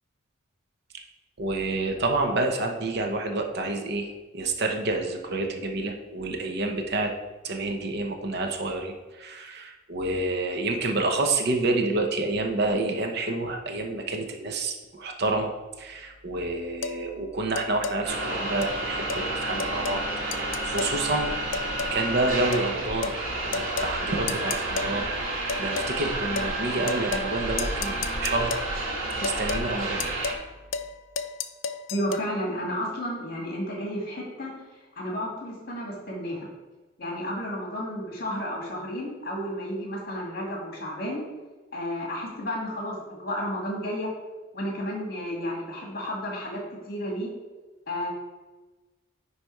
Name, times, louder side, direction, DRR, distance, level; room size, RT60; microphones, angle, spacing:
voice 1, 1.4-7.1 7.4-15.5 15.8-20.1 20.4-21.3 21.9-23.1 23.5-28.6 29.2-30.0, right 2 dB, 50° right, 3 dB, 0.9 m, -28 dB
sound 1, 16.8-17.0 17.6-18.0 18.6-18.8 19.1-19.2 19.6-20.0 20.3-21.0 21.5-22.0 22.5-22.7 23.0-23.2 23.5-23.9 24.3-24.9 25.5-25.9 26.4-26.5 26.9-27.3 27.6-28.7 29.2-29.7 30.0-30.4 30.7-30.9 31.2-32.3, left 5 dB, 65° left, 0.5 m, -32 dB
sound 2, 18.0-30.3, right 2 dB, 75° right, 2.2 m, -30 dB
voice 2, 31.9-34.5 35.0-36.5 37.0-41.2 41.7-44.1 44.5-47.3 47.9-48.1, equal, 45° left, -2 dB, 2.2 m, -32 dB
9.9 x 3.4 x 4.6 m, 1.2 s
head